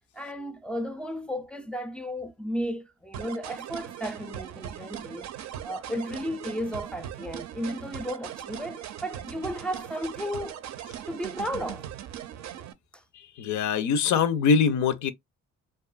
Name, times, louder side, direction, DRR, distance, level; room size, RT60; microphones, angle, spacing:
voice 1, 0.0-5.3 5.6-10.6 11.1-11.9 12.9-13.0, equal, 5° left, 0.3 m, -34 dB
sound 1, 3.1-12.7, right 10 dB, 65° right, 0.5 m, -39 dB
voice 2, 13.1-15.1, left 6 dB, 75° left, 0.5 m, -23 dB
2.7 x 2.3 x 2.2 m
cardioid pair, 90°, 30 cm